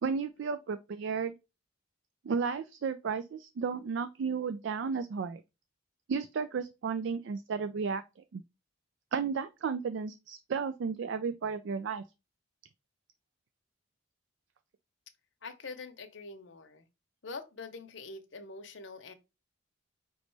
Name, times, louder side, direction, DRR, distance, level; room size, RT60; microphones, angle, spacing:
voice 1, 0.0-1.3 2.2-5.4 6.1-8.4 9.1-12.0, right 5 dB, 60° right, 0.3 m, -33 dB
voice 2, 15.4-16.8 17.2-19.1, left 3 dB, 65° left, 0.8 m, -44 dB
5.1 x 3.1 x 3.2 m
head